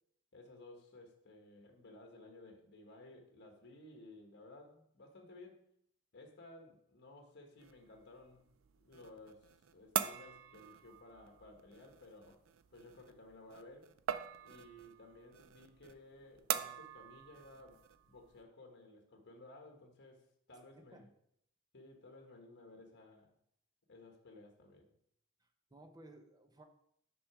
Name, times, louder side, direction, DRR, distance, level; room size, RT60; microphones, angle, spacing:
voice 1, 0.3-5.7 6.1-8.5 8.8-12.4 12.7-13.9 14.4-21.1 21.7-23.3 23.9-24.9, left 2 dB, 55° left, 3 dB, 1.2 m, -57 dB
sound 1, 7.6-18.4, right 9 dB, 70° right, 0.4 m, -44 dB
voice 2, 20.7-21.1 25.4-26.6, right 1 dB, 20° right, 6 dB, 0.7 m, -58 dB
6.1 x 4.9 x 4.8 m, 0.71 s
head